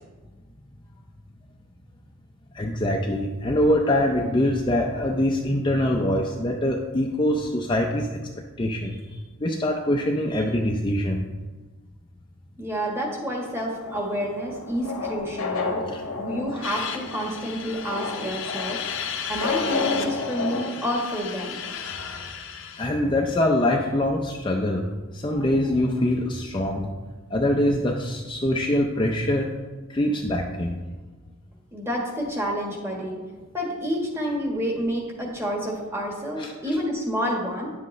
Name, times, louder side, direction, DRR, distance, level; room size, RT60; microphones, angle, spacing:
voice 1, 2.5-8.2 8.6-11.2 15.9-16.0 22.8-24.9 25.1-26.9 27.3-29.5 29.9-30.8 36.4-36.5, left 1 dB, 20° left, 1 dB, 0.5 m, -24 dB
voice 2, 12.6-15.8 16.2-18.8 19.3-21.6 31.7-33.2 33.5-37.7, equal, 10° right, -1 dB, 1.5 m, -29 dB
sound 1, 13.4-20.7, left 4 dB, 85° left, 1.1 m, -31 dB
sound 2, 16.6-22.9, left 7 dB, 65° left, 0.7 m, -34 dB
10.0 x 7.6 x 3.2 m, 1.3 s
head